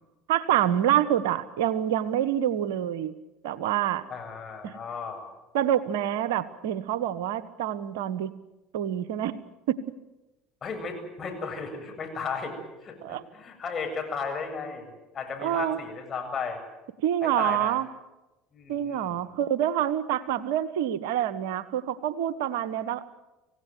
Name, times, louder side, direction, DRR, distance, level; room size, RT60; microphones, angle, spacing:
voice 1, 0.3-3.1 3.4-4.0 4.6-4.7 5.5-8.3 8.7-9.4 9.7-9.8 13.0-13.2 15.4-15.8 17.0-17.9 18.7-23.1, right 11 dB, 75° right, 15 dB, 1.2 m, -27 dB
voice 2, 4.1-5.3 10.6-12.6 12.8-16.6 17.2-17.7 18.5-19.2, left 5 dB, 35° left, 4 dB, 7.9 m, -35 dB
26.0 x 17.0 x 9.5 m, 1.0 s
hypercardioid pair, 70°, 0 cm